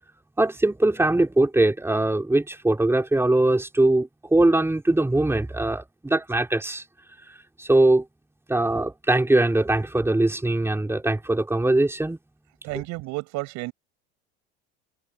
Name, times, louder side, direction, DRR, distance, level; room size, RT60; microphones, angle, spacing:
voice 1, 0.4-6.8 7.6-8.0 8.5-12.2, right 2 dB, 5° right, 4.3 m, -21 dB
voice 2, 12.6-13.7, right 22 dB, 60° right, 6.7 m, -31 dB
hypercardioid pair, 90°, 32 cm